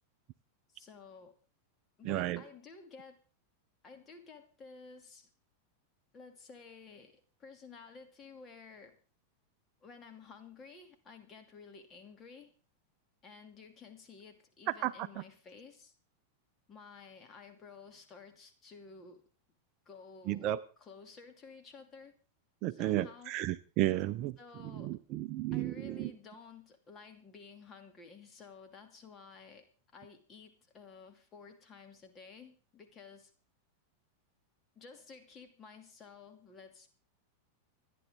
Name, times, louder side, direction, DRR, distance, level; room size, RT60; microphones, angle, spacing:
voice 1, 0.7-1.3 2.0-3.2 3.8-5.3 6.1-9.0 9.8-12.5 13.2-15.9 16.7-19.2 19.9-20.5 20.8-22.2 22.7-23.3 24.4-25.0 25.5-29.7 29.9-33.3 34.8-36.9, left 5 dB, 25° left, 6 dB, 2.7 m, -53 dB
voice 2, 2.0-2.4 14.7-15.2 20.3-20.6 22.6-26.1, right 14 dB, 40° right, 15 dB, 0.6 m, -33 dB
27.5 x 10.0 x 3.7 m, 0.38 s
figure-of-eight pair, 90°, 0 cm